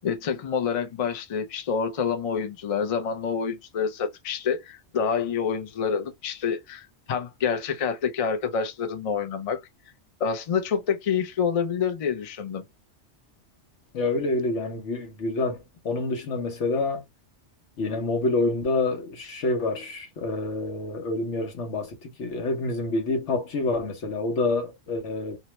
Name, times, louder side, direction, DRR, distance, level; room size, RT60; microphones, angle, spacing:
voice 1, 0.0-9.6 10.2-12.6, left 6 dB, 45° left, 0.5 m, -27 dB
voice 2, 13.9-15.6 15.8-17.0 17.8-25.4, left 3 dB, 90° left, 1.2 m, -27 dB
2.9 x 2.1 x 2.9 m
omnidirectional pair, 1.2 m